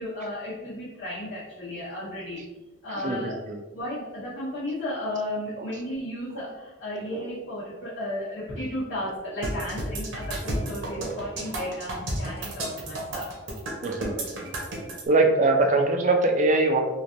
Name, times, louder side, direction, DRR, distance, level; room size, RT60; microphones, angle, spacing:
voice 1, 0.0-2.4 2.8-3.4 3.7-13.3 13.8-14.0, left 1 dB, 85° left, -10 dB, 1.0 m, -34 dB
voice 2, 3.0-3.6 5.6-5.7 7.1-7.2 13.8-14.5 15.1-16.8, right 2 dB, 35° right, 4 dB, 0.3 m, -22 dB
sound 1, 9.4-15.0, right 1 dB, 75° right, 0.8 m, -32 dB
3.2 x 2.4 x 2.4 m, 1.1 s
head